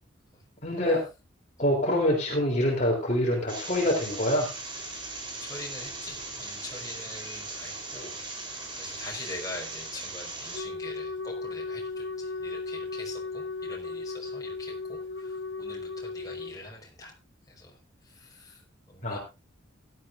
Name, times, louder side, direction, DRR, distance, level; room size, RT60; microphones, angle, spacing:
voice 1, 0.6-1.0 1.6-4.5 19.0-19.2, left 1 dB, 35° left, 0 dB, 3.4 m, -25 dB
sound 1, 3.5-10.6, right 2 dB, 25° right, 3.9 m, -39 dB
voice 2, 5.4-8.2 8.4-17.1 17.5-17.8 18.0-19.2, left 2 dB, 20° left, 0 dB, 5.0 m, -44 dB
Wind instrument woodwind instrument, 10.5-16.6, left 3 dB, 60° left, 1.0 m, -36 dB
16.5 x 12.5 x 2.6 m, 0.27 s
head